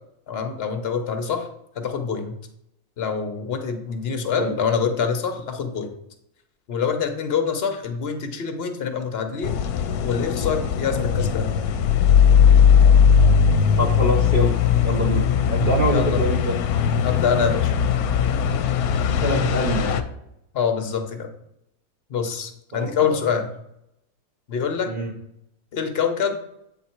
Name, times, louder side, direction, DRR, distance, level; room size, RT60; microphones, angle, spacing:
voice 1, 0.3-1.5 1.7-2.3 3.0-5.9 6.7-9.6 10.0-11.5 15.9-16.2 17.0-17.7 20.5-21.3 22.1-23.5 24.5-24.9 25.7-26.4, left 6 dB, 50° left, 6 dB, 0.9 m, -25 dB
sound 1, 9.4-20.0, left 7 dB, 80° left, 1.0 m, -19 dB
voice 2, 13.8-16.5 19.1-20.0 22.7-23.2 24.9-25.1, right 1 dB, 40° right, -2 dB, 0.9 m, -25 dB
8.2 x 3.9 x 4.4 m, 0.81 s
omnidirectional pair, 1.6 m